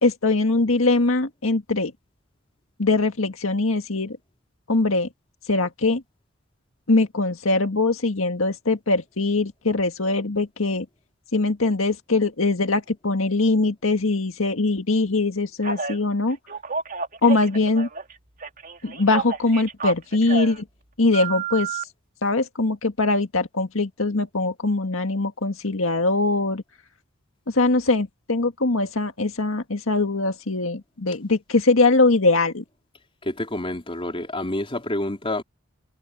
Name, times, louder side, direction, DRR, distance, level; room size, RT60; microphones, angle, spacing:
voice 1, 0.0-1.9 2.8-4.2 4.7-5.1 5.5-6.0 6.9-10.9 11.3-16.4 17.2-17.9 18.8-20.6 21.0-21.8 22.2-26.6 27.5-32.6, left 3 dB, 90° left, 1.8 m, -22 dB
Telephone, 15.6-16.0 16.5-18.1 18.4-20.6 21.1-21.8, right 5 dB, 45° right, 3.4 m, -30 dB
voice 2, 33.2-35.4, left 1 dB, 25° left, 4.4 m, -28 dB
head